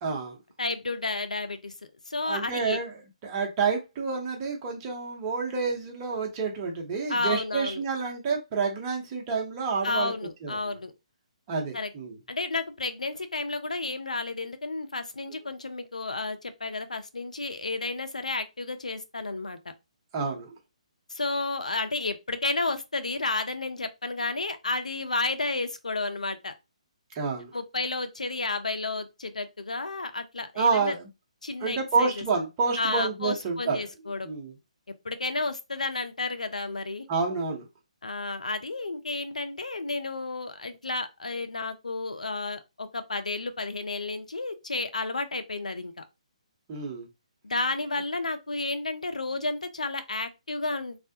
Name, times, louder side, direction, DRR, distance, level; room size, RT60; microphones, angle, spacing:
voice 1, 0.0-0.4 2.2-2.9 3.2-10.1 10.4-10.6 11.5-12.2 20.1-20.5 27.1-27.5 30.6-31.0 31.6-33.8 34.2-34.5 37.1-37.7 46.7-47.1, right 5 dB, 30° right, 0.9 m, -28 dB
voice 2, 0.6-1.7 2.1-2.8 7.1-7.8 9.8-10.9 11.7-11.9 12.3-19.6 21.1-26.5 27.5-30.9 31.4-32.2 32.8-34.3 35.0-37.1 38.0-46.0 47.4-51.0, left 3 dB, 85° left, 0.6 m, -31 dB
3.3 x 2.4 x 2.8 m
figure-of-eight pair, 140°, 4 cm